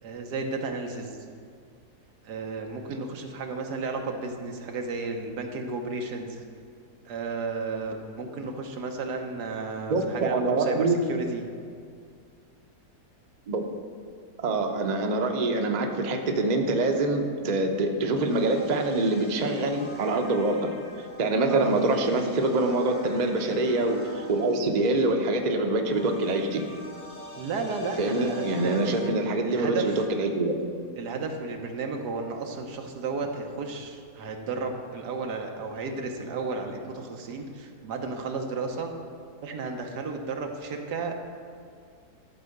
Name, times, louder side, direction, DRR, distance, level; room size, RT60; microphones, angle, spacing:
voice 1, 0.0-1.2 2.2-6.4 7.0-11.4 21.5-21.7 27.4-30.0 31.0-38.9 39.4-41.2, right 3 dB, 85° right, 3 dB, 1.5 m, -33 dB
voice 2, 9.9-11.0 13.5-13.6 14.4-20.7 21.2-26.6 28.0-30.6, right 2 dB, 40° right, 3 dB, 0.7 m, -25 dB
sound 1, 18.0-29.1, left 1 dB, 85° left, 3.8 m, -45 dB
12.5 x 4.7 x 6.5 m, 2.2 s
omnidirectional pair, 1.7 m